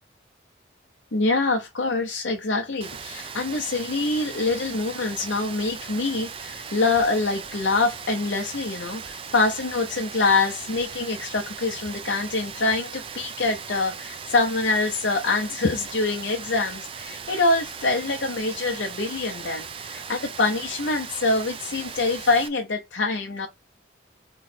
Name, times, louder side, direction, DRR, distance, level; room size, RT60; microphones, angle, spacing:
voice 1, 1.1-23.5, left 3 dB, 75° left, 0.8 m, -25 dB
Rain, 2.8-22.5, right 6 dB, 30° right, 0.4 m, -38 dB
3.8 x 3.1 x 4.2 m
head